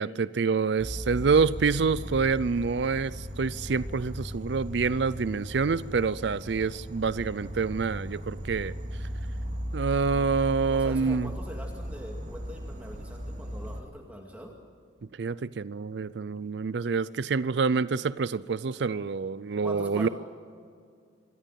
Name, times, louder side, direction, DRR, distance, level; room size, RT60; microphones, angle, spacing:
voice 1, 0.0-8.7 9.7-11.3 15.2-20.1, right 5 dB, 65° right, 17 dB, 0.5 m, -27 dB
Insect, 0.8-13.8, equal, 40° right, 2.4 m, -37 dB
voice 2, 10.7-14.5 19.6-20.1, equal, 10° right, 0 dB, 2.2 m, -42 dB
26.5 x 14.5 x 9.2 m, 2.2 s
head